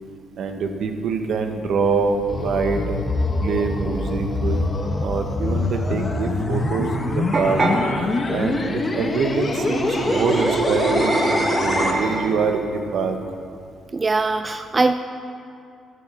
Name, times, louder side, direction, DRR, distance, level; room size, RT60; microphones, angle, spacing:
voice 1, 0.4-3.0 3.4-4.6 5.0-7.6 8.0-11.2 11.6-13.2, right 5 dB, 70° right, 6 dB, 0.9 m, -24 dB
sound 1, 1.8-11.9, left 2 dB, 35° left, 1.0 m, -25 dB
sound 2, 7.3-7.8 9.4-12.5, right 2 dB, 45° right, 1.4 m, -23 dB
voice 2, 13.9-14.9, right 3 dB, 25° right, 9 dB, 0.3 m, -21 dB
9.3 x 6.3 x 7.2 m, 2.4 s
cardioid pair, 90°, 0 cm